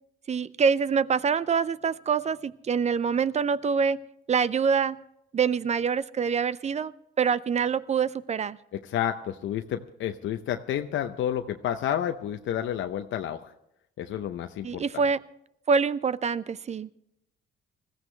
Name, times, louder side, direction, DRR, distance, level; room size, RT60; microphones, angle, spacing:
voice 1, 0.3-4.0 4.3-5.0 5.3-6.9 7.2-8.6 14.6-15.2 15.7-16.9, right 6 dB, 35° right, 18 dB, 0.6 m, -25 dB
voice 2, 8.7-13.5 14.0-14.8, left 10 dB, 75° left, 6 dB, 0.7 m, -30 dB
20.0 x 14.5 x 3.3 m, 0.80 s
cardioid pair, 90°, 20 cm